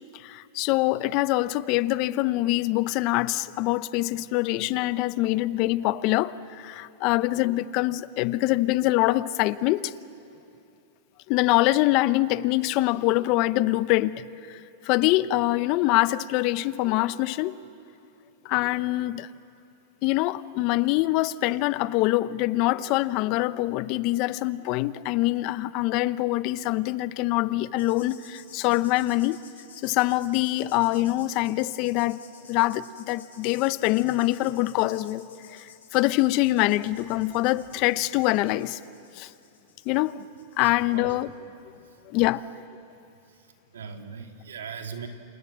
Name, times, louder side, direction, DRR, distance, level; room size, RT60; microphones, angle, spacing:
voice 1, 0.1-9.9 11.3-17.6 18.4-19.3 20.0-29.4 29.8-32.2 32.5-38.8 39.1-39.3 39.9-40.3 40.6-41.3 42.1-42.5, left 17 dB, 45° left, 0.8 m, -24 dB
sound 1, 27.8-41.9 42.2-42.4, left 7 dB, 90° left, 7.5 m, -52 dB
voice 2, 40.6-41.1 43.7-45.1, right 6 dB, 90° right, 2.6 m, -39 dB
28.5 x 27.5 x 7.5 m
hypercardioid pair, 125°, 0 cm